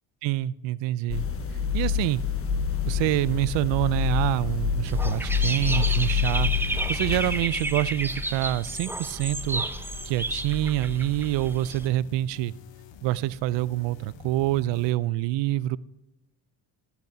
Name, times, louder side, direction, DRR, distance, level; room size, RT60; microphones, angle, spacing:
voice 1, 0.2-1.2 1.7-2.2 2.9-9.6 10.0-12.5 13.0-15.8, right 15 dB, 70° right, 20 dB, 0.5 m, -26 dB
sound 1, 1.1-7.4, left 7 dB, 30° left, 1.1 m, -27 dB
sound 2, 2.1-14.9, left 7 dB, 70° left, 1.1 m, -48 dB
Dog / Bird, 4.9-11.9, right 1 dB, 5° right, 0.7 m, -31 dB
12.0 x 8.2 x 2.7 m, 0.97 s
supercardioid pair, 75°, 46 cm